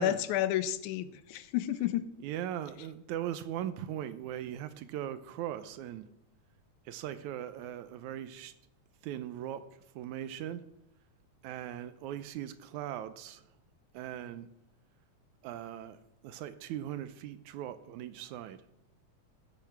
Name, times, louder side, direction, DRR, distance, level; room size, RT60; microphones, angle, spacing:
voice 1, 0.0-2.1, left 12 dB, 80° left, 2.1 m, -31 dB
voice 2, 2.2-6.1 6.9-8.5 9.0-9.6 9.9-10.6 11.4-13.4 13.9-14.5 15.4-16.0 16.2-18.6, right 11 dB, 80° right, 2.0 m, -39 dB
15.0 x 8.0 x 5.9 m
omnidirectional pair, 3.6 m